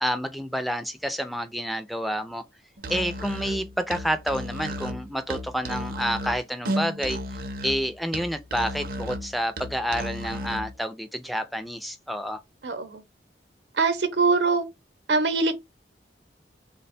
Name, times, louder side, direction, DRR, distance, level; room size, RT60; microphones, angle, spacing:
voice 1, 0.0-2.4 2.9-7.2 7.6-12.4, equal, ahead, 0.3 m, -29 dB
Musical instrument, 2.8-10.7, equal, 55° right, 0.5 m, -33 dB
voice 2, 12.6-13.0 13.8-14.6 15.1-15.5, right 4 dB, 80° right, 0.8 m, -22 dB
3.3 x 2.2 x 4.1 m
head